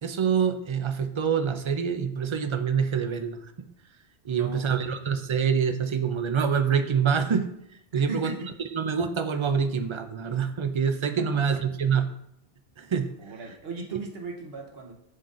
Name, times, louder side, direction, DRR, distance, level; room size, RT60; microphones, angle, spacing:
voice 1, 0.0-3.4 4.2-7.5 7.9-8.3 8.7-12.1 12.8-13.1, right 6 dB, 50° right, 8 dB, 0.3 m, -26 dB
voice 2, 4.3-5.2 7.9-8.5 11.2-11.4 13.2-14.9, right 3 dB, 70° right, 1 dB, 1.3 m, -38 dB
11.0 x 3.9 x 2.5 m, 0.76 s
omnidirectional pair, 1.1 m